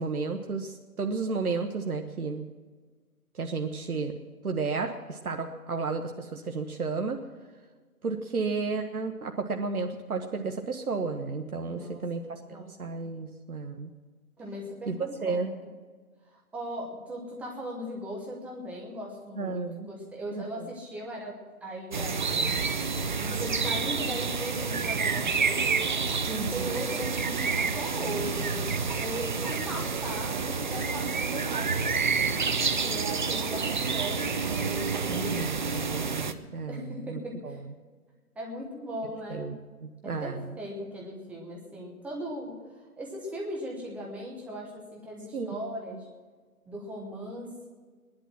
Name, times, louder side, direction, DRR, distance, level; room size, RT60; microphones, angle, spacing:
voice 1, 0.0-2.4 3.3-4.1 4.4-7.2 8.0-13.9 14.9-15.0 15.2-15.5 19.3-19.9 20.3-20.7 26.3-26.7 35.1-37.6 39.3-40.4 45.3-45.7, right 4 dB, 75° right, 4 dB, 1.3 m, -33 dB
voice 2, 11.7-12.0 12.5-12.8 14.4-15.7 16.3-22.2 23.2-35.6 36.7-37.6 38.3-39.6 40.2-42.5 43.0-46.1 46.7-47.7, equal, 5° right, -1 dB, 1.1 m, -38 dB
sound 1, 21.9-36.3, right 5 dB, 35° right, 0.6 m, -29 dB
18.0 x 11.5 x 6.1 m, 1.4 s
figure-of-eight pair, 145°, 44 cm